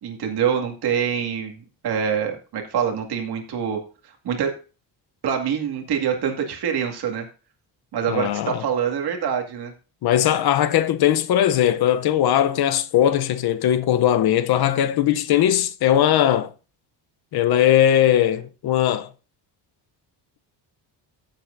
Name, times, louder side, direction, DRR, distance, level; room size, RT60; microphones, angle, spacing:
voice 1, 0.0-3.8 4.2-4.6 5.2-7.3 7.9-9.7, right 7 dB, 60° right, 2.2 m, -25 dB
voice 2, 8.1-8.6 10.0-16.5 17.3-19.1, left 11 dB, 60° left, 0.7 m, -19 dB
14.5 x 7.8 x 2.6 m
cardioid pair, 165°, 43 cm